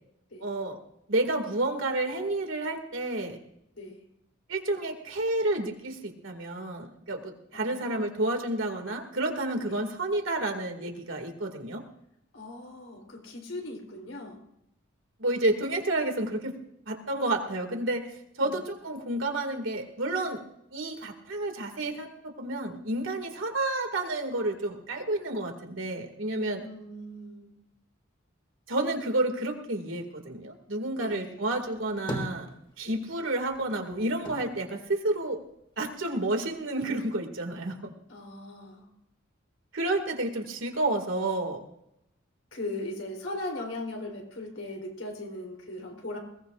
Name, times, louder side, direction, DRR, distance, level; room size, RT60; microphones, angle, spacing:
voice 1, 0.4-0.8 1.1-3.4 4.5-11.8 15.2-16.6 16.9-18.1 18.4-20.4 20.7-26.6 28.7-32.5 32.8-35.4 35.8-37.9 39.7-41.6, right 2 dB, 75° right, 4 dB, 2.4 m, -30 dB
voice 2, 3.7-4.1 7.5-8.1 9.6-9.7 12.3-14.4 18.4-18.6 26.6-27.5 31.0-31.4 32.8-33.0 38.1-38.9 42.5-46.2, left 2 dB, 75° left, 1 dB, 4.0 m, -39 dB
sound 1, 31.6-33.1 33.4-35.8 36.2-37.1, equal, 25° left, 2.4 m, -40 dB
21.0 x 18.5 x 2.6 m, 0.80 s
head